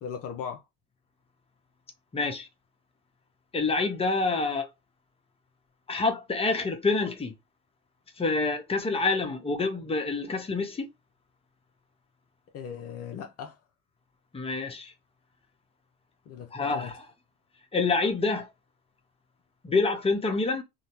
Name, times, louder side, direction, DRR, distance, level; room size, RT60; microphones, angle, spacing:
voice 1, 0.0-0.6 12.5-13.6 16.3-16.9, left 7 dB, 55° left, 0.6 m, -38 dB
voice 2, 2.1-2.5 3.5-4.7 5.9-7.3 8.2-10.9 14.3-14.9 16.5-17.1 17.7-18.5 19.6-20.6, left 3 dB, 20° left, 0.9 m, -27 dB
2.7 x 2.1 x 2.9 m
supercardioid pair, 85°, 29 cm